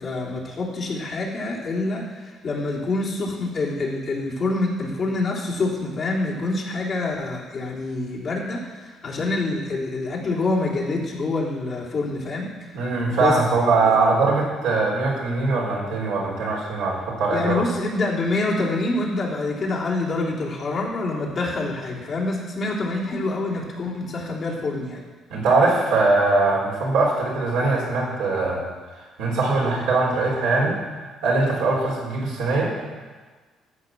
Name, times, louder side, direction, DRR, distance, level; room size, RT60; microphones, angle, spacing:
voice 1, 0.0-2.1 2.4-12.5 13.2-13.4 13.8-14.0 17.3-25.0, left 2 dB, 50° left, -4 dB, 3.4 m, -26 dB
voice 2, 12.7-17.6 25.3-28.6 29.2-30.8 31.2-32.8, right 3 dB, 75° right, -4 dB, 4.0 m, -21 dB
14.0 x 6.1 x 7.5 m, 1.3 s
hypercardioid pair, 55°, 0 cm